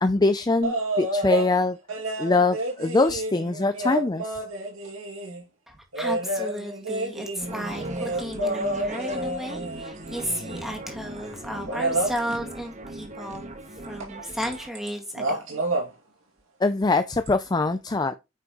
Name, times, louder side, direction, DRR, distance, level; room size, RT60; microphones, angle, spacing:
voice 1, 0.0-1.8 2.2-4.4 16.6-18.1, left 3 dB, 20° left, 0.4 m, -23 dB
sound 1, 0.6-1.5 1.9-5.4 5.9-10.8 11.7-12.2 14.0-14.1 14.4-14.9 15.1-15.9 17.3-17.4, right 1 dB, 70° right, 2.4 m, -29 dB
voice 2, 5.7-13.5 13.9-15.6, equal, ahead, 2.0 m, -34 dB
sound 2, 7.4-14.7, right 2 dB, 35° right, 1.3 m, -39 dB
9.1 x 6.0 x 3.0 m
head